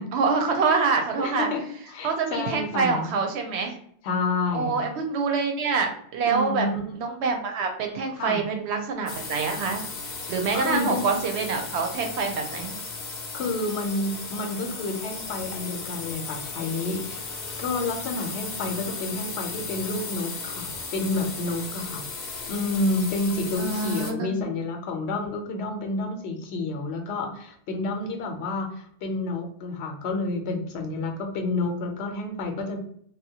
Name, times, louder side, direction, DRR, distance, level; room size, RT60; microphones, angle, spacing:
voice 1, 0.1-1.5 2.0-3.8 4.5-6.7 7.0-9.8 10.3-12.7 23.6-24.5, right 4 dB, 90° right, 4 dB, 0.8 m, -26 dB
voice 2, 1.2-1.6 1.9-3.1 4.0-4.8 6.2-7.0 8.2-8.4 10.5-11.2 13.3-17.2 17.6-22.0 22.5-32.8, left 2 dB, 90° left, 4 dB, 0.9 m, -29 dB
sound 1, 9.1-24.1, left 4 dB, 50° left, 0.6 m, -36 dB
2.8 x 2.2 x 2.7 m, 0.63 s
omnidirectional pair, 1.1 m